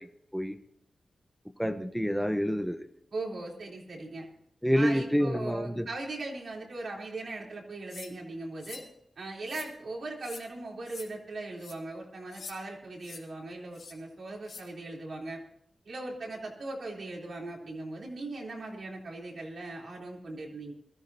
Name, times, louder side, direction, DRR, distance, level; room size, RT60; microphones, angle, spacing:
voice 1, 1.6-2.8 4.6-5.9, equal, ahead, 8 dB, 0.8 m, -27 dB
voice 2, 3.1-4.3 4.7-8.8 9.2-15.4 15.9-20.7, right 2 dB, 70° right, -1 dB, 3.4 m, -39 dB
sound 1, 7.9-8.1 8.6-8.9 9.4-9.7 10.2-10.4 10.9-11.1 11.6-11.8 12.3-12.6 13.0-13.2 13.7-13.9 14.4-14.6, left 4 dB, 80° left, 2.3 m, -45 dB
21.5 x 14.0 x 2.8 m, 0.75 s
cardioid pair, 80°, 0 cm